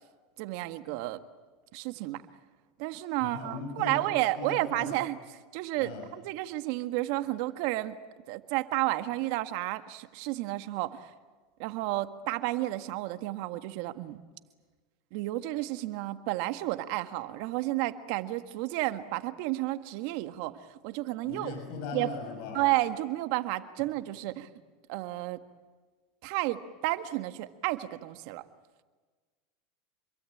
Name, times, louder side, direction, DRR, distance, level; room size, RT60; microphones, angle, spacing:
voice 1, 0.4-1.2 1.7-2.2 2.8-5.2 5.5-8.0 8.3-11.1 11.6-14.2 15.1-21.5 21.9-22.2 22.5-24.5 24.9-25.4 26.2-28.5, right 17 dB, 65° right, 10 dB, 1.7 m, -31 dB
voice 2, 3.2-4.0 4.3-5.0 5.8-6.1 21.2-22.7 24.3-24.4, left 4 dB, 60° left, 4 dB, 6.7 m, -39 dB
27.5 x 23.0 x 8.7 m, 1.4 s
hypercardioid pair, 100°, 0 cm